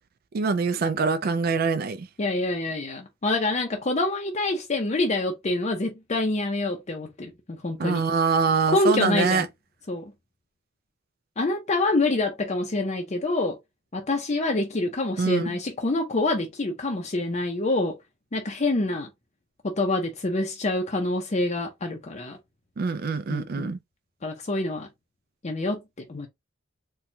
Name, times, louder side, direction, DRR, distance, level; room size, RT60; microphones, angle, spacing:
voice 1, 0.3-2.1 7.8-9.5 15.2-15.5 22.8-23.8, right 4 dB, 50° right, 0.4 m, -24 dB
voice 2, 2.2-8.0 8.7-9.5 9.9-10.1 11.4-13.6 13.9-18.0 18.3-19.1 19.6-22.4 23.3-23.7 24.2-24.9 25.4-26.3, left 2 dB, 35° left, 0.6 m, -26 dB
4.3 x 2.3 x 2.7 m
head